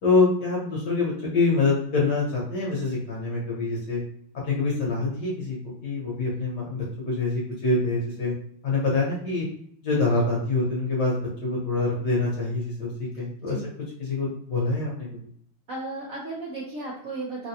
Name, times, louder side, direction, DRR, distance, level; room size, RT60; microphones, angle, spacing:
voice 1, 0.0-4.0 4.3-5.6 5.8-8.3 8.6-9.5 9.8-13.6 14.0-15.1, left 3 dB, 60° left, -4 dB, 1.3 m, -25 dB
voice 2, 15.7-17.5, right 2 dB, 70° right, -5 dB, 0.7 m, -34 dB
3.9 x 2.1 x 2.8 m, 0.64 s
omnidirectional pair, 2.3 m